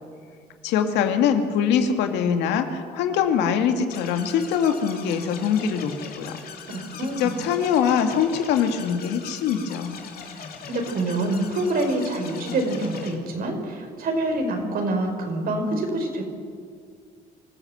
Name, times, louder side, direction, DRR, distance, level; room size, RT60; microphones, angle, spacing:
voice 1, 0.6-6.4 7.0-10.0, left 7 dB, 85° left, 6 dB, 2.1 m, -23 dB
sound 1, 3.9-13.1, left 6 dB, 60° left, 3.1 m, -40 dB
voice 2, 6.7-7.3 10.2-16.2, right 2 dB, 60° right, 3 dB, 4.8 m, -26 dB
25.5 x 14.5 x 7.9 m, 2.1 s
cardioid pair, 100°, 17 cm